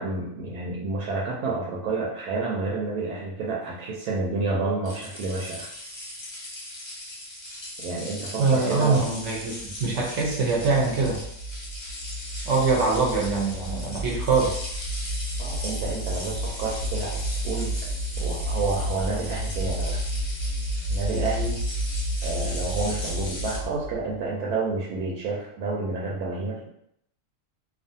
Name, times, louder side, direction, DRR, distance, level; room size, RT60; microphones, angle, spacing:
voice 1, 0.0-5.7 7.8-9.1 15.4-17.7 18.2-20.0 20.9-21.6 22.2-26.7, right 3 dB, 85° right, -3 dB, 1.1 m, -29 dB
sound 1, 4.8-23.6, left 1 dB, 35° left, 0.4 m, -38 dB
voice 2, 8.4-11.2 12.5-14.6, right 4 dB, 60° right, -2 dB, 0.8 m, -23 dB
sound 2, 8.9-24.2, equal, 60° left, 0.8 m, -31 dB
2.4 x 2.4 x 2.6 m, 0.73 s
omnidirectional pair, 1.6 m